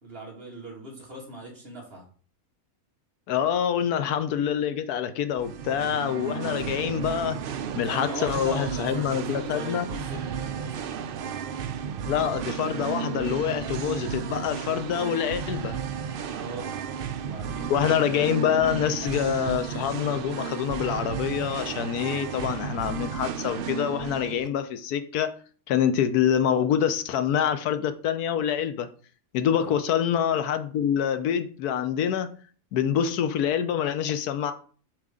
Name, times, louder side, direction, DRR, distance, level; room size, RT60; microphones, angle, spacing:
voice 1, 0.0-2.0 7.9-10.9 16.3-16.7 17.2-17.8 29.6-29.8, right 1 dB, 40° right, 2.3 m, -39 dB
voice 2, 3.3-7.4 7.7-9.8 12.0-15.8 17.7-25.3 25.7-28.9 29.3-32.3 32.7-34.5, left 9 dB, 90° left, 1.2 m, -26 dB
Singing, 5.3-24.5, right 7 dB, 85° right, 0.4 m, -33 dB
7.7 x 5.0 x 3.7 m
omnidirectional pair, 1.6 m